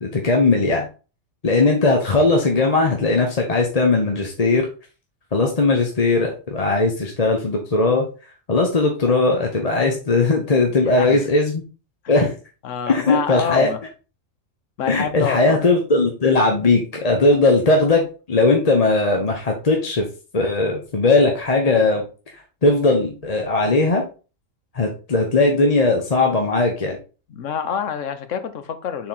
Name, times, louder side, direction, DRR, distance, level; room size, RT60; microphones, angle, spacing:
voice 1, 0.0-0.9 1.4-4.7 5.3-8.1 8.5-11.6 12.1-12.3 12.9-13.7 14.9-20.1 20.3-22.0 22.6-24.0 24.7-27.0, left 3 dB, 35° left, 0.9 m, -18 dB
voice 2, 10.8-11.3 12.0-12.2 12.6-13.8 14.8-15.6 27.3-29.1, left 7 dB, 70° left, 1.1 m, -27 dB
6.4 x 4.1 x 4.1 m
omnidirectional pair, 1.3 m